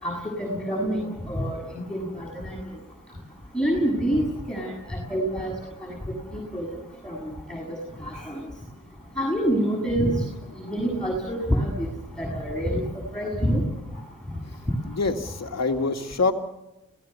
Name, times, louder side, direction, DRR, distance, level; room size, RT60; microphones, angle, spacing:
voice 1, 0.0-2.6 3.5-5.5 5.8-6.0 6.3-6.7 7.0-7.8 8.0-8.4 9.2-10.2 10.6-11.9 12.2-12.8 13.1-13.6, equal, 5° left, -3 dB, 7.6 m, -27 dB
voice 2, 14.9-16.3, left 4 dB, 55° left, 5 dB, 2.4 m, -25 dB
28.5 x 18.0 x 7.0 m, 0.94 s
cardioid pair, 50°, 31 cm